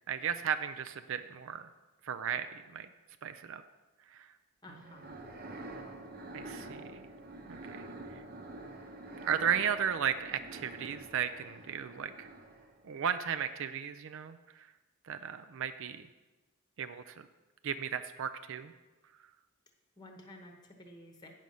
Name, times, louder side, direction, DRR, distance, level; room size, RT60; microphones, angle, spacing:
voice 1, 0.1-1.7 2.0-2.9 3.2-3.6 4.1-4.3 4.7-4.8 6.3-7.1 7.5-8.2 9.3-12.3 12.8-14.7 15.0-16.1 16.8-17.3 17.6-18.7, right 8 dB, 60° right, 11 dB, 0.4 m, -35 dB
voice 2, 4.6-5.2 20.0-21.3, left 1 dB, 20° left, 3 dB, 1.0 m, -52 dB
sound 1, 4.8-12.9, right 2 dB, 45° right, 0.9 m, -47 dB
9.1 x 6.3 x 5.5 m, 1.2 s
head